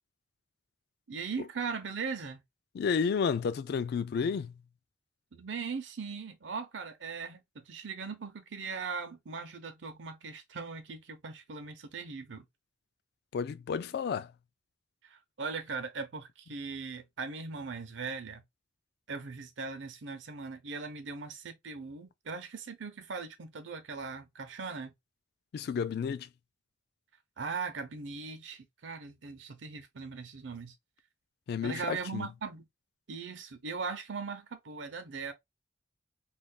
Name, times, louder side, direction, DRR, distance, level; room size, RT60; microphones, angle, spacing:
voice 1, 1.1-2.4 5.3-12.4 15.0-18.4 19.1-24.9 27.4-30.7 31.6-32.7 33.1-35.3, right 5 dB, 85° right, 0.7 m, -39 dB
voice 2, 2.7-4.5 13.3-14.3 25.5-26.3 31.5-32.3, left 6 dB, 60° left, 0.3 m, -31 dB
2.4 x 2.3 x 3.6 m
head